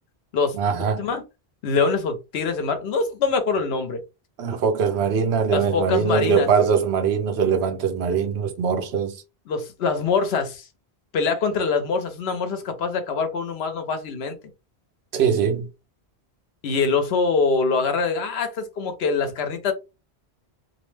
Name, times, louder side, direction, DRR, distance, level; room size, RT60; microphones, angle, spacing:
voice 1, 0.5-1.1 4.4-9.2 15.1-15.7, right 6 dB, 75° right, 0.9 m, -22 dB
voice 2, 1.6-4.0 5.5-6.5 9.5-10.7 11.1-14.4 16.6-19.7, left 4 dB, 75° left, 0.9 m, -24 dB
2.5 x 2.0 x 3.2 m
omnidirectional pair, 1.1 m